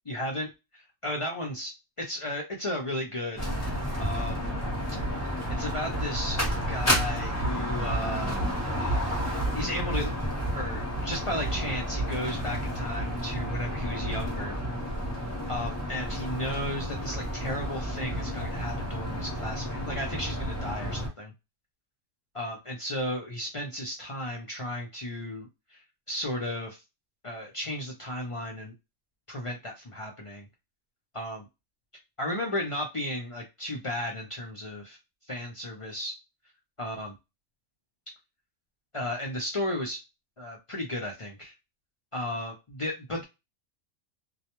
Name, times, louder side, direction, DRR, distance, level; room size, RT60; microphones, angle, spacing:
voice 1, 0.1-1.7 2.0-3.5 4.0-4.5 5.1-5.2 5.6-6.4 6.7-8.4 8.8-10.1 10.6-14.6 15.5-21.3 22.3-25.8 26.1-26.8 27.2-28.7 29.3-30.4 31.1-31.4 32.2-35.0 35.3-36.1 36.8-37.1 38.9-40.0 40.4-41.5 42.1-43.2, left 1 dB, 50° left, -1 dB, 0.4 m, -34 dB
sound 1, 3.4-21.1, equal, 15° left, 0.7 m, -31 dB
2.3 x 2.1 x 2.9 m, 0.23 s
omnidirectional pair, 1.3 m